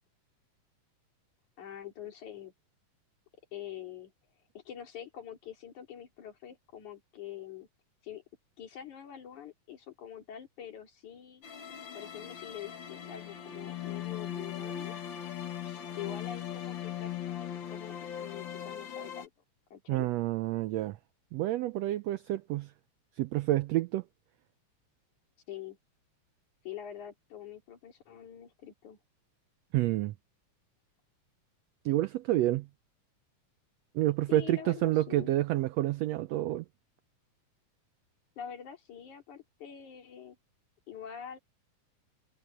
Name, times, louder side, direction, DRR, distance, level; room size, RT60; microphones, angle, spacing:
voice 1, 1.6-2.5 3.5-4.1 4.5-7.7 8.0-8.2 8.6-11.4 11.9-15.0 16.0-19.3 19.7-20.1 25.5-25.8 26.6-29.0 34.3-35.3 38.4-40.4 40.9-41.4, left 10 dB, 70° left, 4.3 m, -45 dB
sound 1, 11.4-19.3, left 10 dB, 50° left, 1.7 m, -39 dB
voice 2, 19.9-21.0 21.3-22.7 23.2-24.0 29.7-30.1 31.8-32.7 33.9-36.6, right 15 dB, 80° right, 1.5 m, -29 dB
omnidirectional pair, 3.6 m